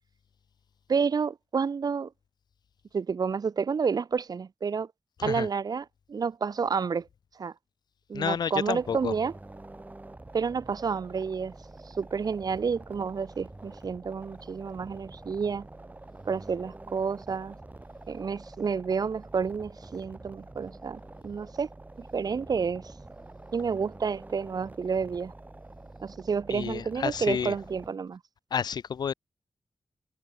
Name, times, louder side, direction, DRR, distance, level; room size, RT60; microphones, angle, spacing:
voice 1, 0.9-2.1 2.9-4.9 5.2-7.1 7.3-7.5 8.1-9.3 10.3-11.5 11.8-15.7 16.2-17.6 18.1-21.7 22.1-22.9 23.5-25.3 26.0-28.2, right 5 dB, 60° right, 0.8 m, -30 dB
voice 2, 8.1-9.1 26.5-27.6 28.5-29.1, left 7 dB, 70° left, 0.4 m, -30 dB
sound 1, 8.8-27.9, right 2 dB, 20° right, 1.7 m, -47 dB
cardioid pair, 70°, 7 cm